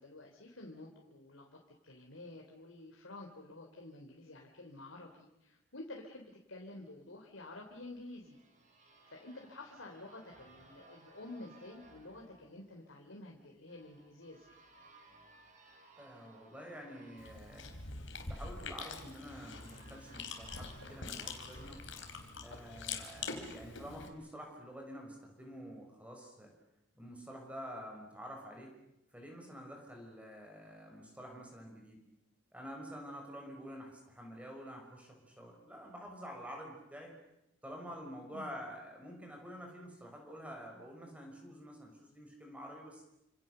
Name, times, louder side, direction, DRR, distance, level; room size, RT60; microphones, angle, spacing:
voice 1, 0.0-1.6 1.8-8.4 8.8-14.5 38.3-38.6, left 2 dB, 90° left, 0 dB, 3.6 m, -50 dB
sound 1, 7.6-23.3, right 2 dB, 40° right, 6.1 m, -62 dB
voice 2, 16.0-17.7 18.2-21.8 22.4-26.5 26.9-28.7 29.1-32.0 32.5-37.1 37.6-43.0, equal, 5° right, 1 dB, 6.1 m, -48 dB
Chewing mastication, 17.2-24.1, left 4 dB, 65° left, 4.1 m, -44 dB
29.0 x 27.0 x 6.9 m, 0.86 s
head